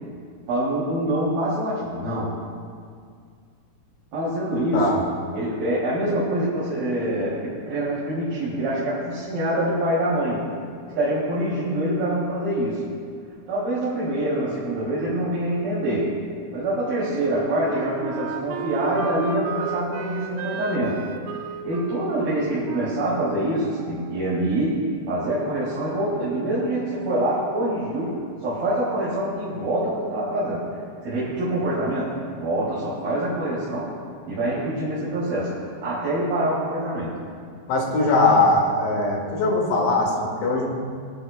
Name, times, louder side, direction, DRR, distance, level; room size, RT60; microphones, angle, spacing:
voice 1, 0.5-2.4 4.1-4.9 5.3-10.4 11.0-12.8 13.5-16.1 16.5-21.0 21.6-30.7 31.0-33.9 34.3-37.2, right 1 dB, 60° right, -9 dB, 4.3 m, -25 dB
Wind instrument woodwind instrument, 17.0-24.6, right 6 dB, 85° right, 2.5 m, -35 dB
voice 2, 37.7-40.7, left 2 dB, 90° left, -2 dB, 4.3 m, -20 dB
26.0 x 11.0 x 2.2 m, 2.2 s
omnidirectional pair, 4.9 m